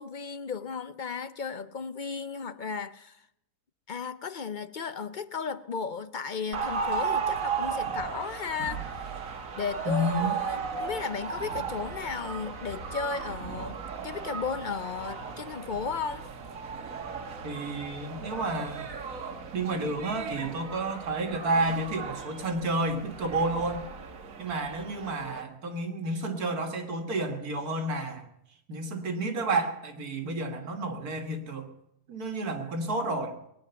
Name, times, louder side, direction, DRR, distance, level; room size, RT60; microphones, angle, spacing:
voice 1, 0.0-3.3 3.9-9.1 9.6-13.8 14.0-16.3, left 5 dB, 50° left, 0.6 m, -35 dB
sound 1, 6.5-25.4, right 5 dB, 65° right, 1.7 m, -36 dB
voice 2, 9.9-10.4 17.4-18.9 19.5-23.9 24.4-28.3 28.7-31.7 32.1-33.4, right 2 dB, 85° right, 2.2 m, -30 dB
20.5 x 9.8 x 7.0 m
omnidirectional pair, 1.6 m